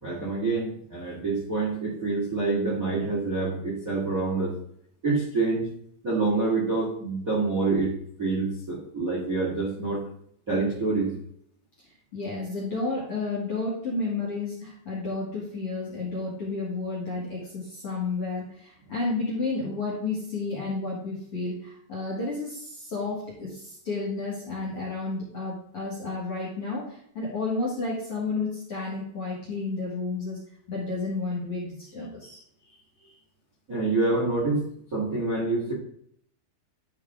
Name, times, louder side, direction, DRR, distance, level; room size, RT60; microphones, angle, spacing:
voice 1, 0.0-4.6 5.0-5.7 6.0-10.0 10.5-11.1 33.7-34.6 34.9-35.7, right 3 dB, 30° right, -5 dB, 1.6 m, -26 dB
voice 2, 12.1-30.4 30.7-32.4, left 3 dB, 45° left, -5 dB, 2.2 m, -31 dB
11.5 x 4.8 x 3.7 m, 0.66 s
omnidirectional pair, 5.1 m